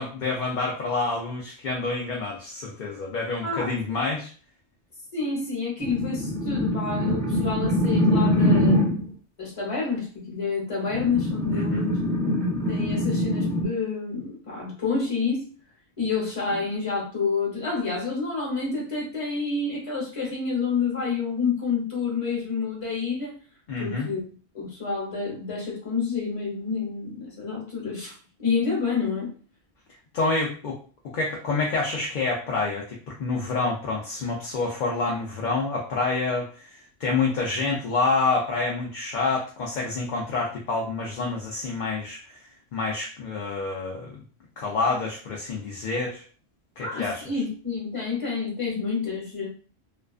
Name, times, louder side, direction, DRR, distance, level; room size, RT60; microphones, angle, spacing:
voice 1, 0.0-4.3 11.5-11.8 23.7-24.1 30.1-30.8 31.1-42.2 42.7-44.2 44.6-46.2 46.8-47.4, left 3 dB, 55° left, -1 dB, 0.6 m, -28 dB
voice 2, 3.4-3.8 5.1-8.8 9.4-12.0 12.7-15.5 16.0-23.3 23.8-24.2 24.5-28.1 28.4-29.3 46.8-49.5, left 4 dB, 30° left, -3 dB, 1.0 m, -28 dB
sound 1, 5.8-9.1 10.9-13.6, left 1 dB, 5° left, 0.7 m, -23 dB
2.4 x 2.3 x 2.3 m, 0.40 s
omnidirectional pair, 1.1 m